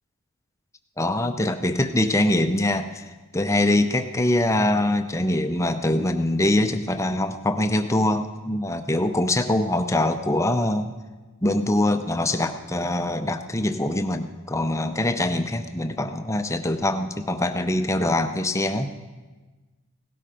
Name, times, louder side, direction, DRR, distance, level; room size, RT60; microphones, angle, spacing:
voice 1, 1.0-10.9 11.4-18.9, left 1 dB, 15° left, 8 dB, 0.6 m, -23 dB
17.0 x 12.5 x 5.1 m, 1.3 s
head